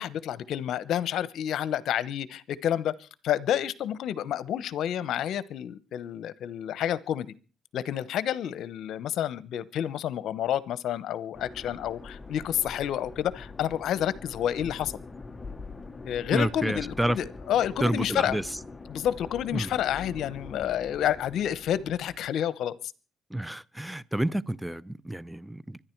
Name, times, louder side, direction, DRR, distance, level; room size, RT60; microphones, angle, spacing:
voice 1, 0.0-7.3 7.7-14.9 16.0-18.4 18.9-22.8, left 10 dB, 75° left, 1.0 m, -29 dB
sound 1, 11.3-22.3, left 3 dB, 20° left, 1.0 m, -44 dB
voice 2, 16.3-17.2 17.8-18.5 19.5-19.7 23.3-25.8, right 1 dB, 5° right, 0.7 m, -29 dB
24.5 x 10.5 x 4.6 m
cardioid pair, 90°, 0 cm